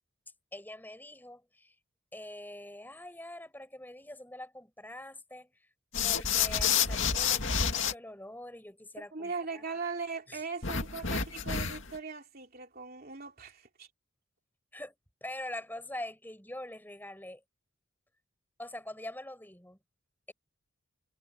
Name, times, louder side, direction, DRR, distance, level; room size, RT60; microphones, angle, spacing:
voice 1, 0.5-1.7 2.1-5.5 6.0-9.6 10.3-10.4 14.7-17.4 18.6-19.8, left 1 dB, 10° left, 5.2 m, -44 dB
sound 1, 5.9-7.9 10.6-12.0, left 7 dB, 60° left, 2.5 m, -29 dB
voice 2, 9.0-13.9, right 4 dB, 45° right, 3.1 m, -39 dB
head